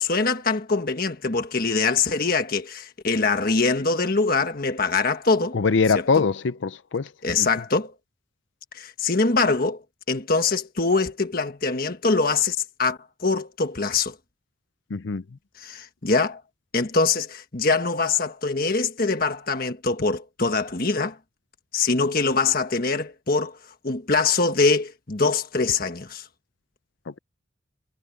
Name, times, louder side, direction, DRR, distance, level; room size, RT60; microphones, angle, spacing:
voice 1, 0.0-5.6 6.2-6.3 7.2-7.9 8.7-9.8 10.1-14.1 15.6-16.4 16.7-21.2 21.7-23.6 23.8-26.3, left 4 dB, 45° left, 1.4 m, -23 dB
voice 2, 5.5-7.1 7.4-7.5 14.9-15.2, left 4 dB, 65° left, 0.5 m, -22 dB
head